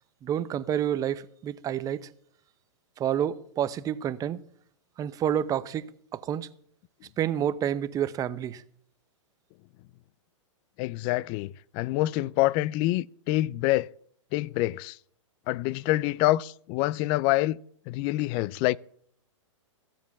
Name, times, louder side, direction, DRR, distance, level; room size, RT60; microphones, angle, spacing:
voice 1, 0.2-2.1 3.0-4.4 5.0-6.5 7.2-8.6, right 10 dB, 20° right, 0.7 m, -29 dB
voice 2, 10.8-13.9 14.3-15.0 15.5-17.6 17.9-18.8, left 17 dB, 35° left, 0.4 m, -26 dB
14.5 x 7.4 x 7.2 m
hypercardioid pair, 130°, 17 cm